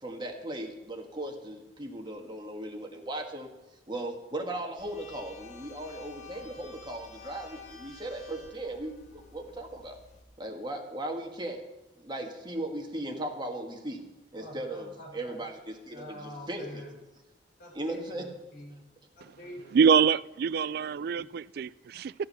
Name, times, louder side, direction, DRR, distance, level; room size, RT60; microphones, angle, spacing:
voice 1, 0.0-3.5 3.9-10.0 10.4-11.6 12.0-14.0 14.3-16.8 17.7-18.3, right 1 dB, 25° right, 1.6 m, -37 dB
sound 1, 4.8-10.2, left 5 dB, 40° left, 1.2 m, -50 dB
voice 2, 14.3-15.4 15.9-17.0 17.6-18.8 19.1-20.1 21.1-21.3, left 1 dB, 55° left, 4.5 m, -46 dB
voice 3, 19.7-22.1, right 6 dB, 60° right, 0.3 m, -25 dB
14.5 x 9.2 x 5.7 m
head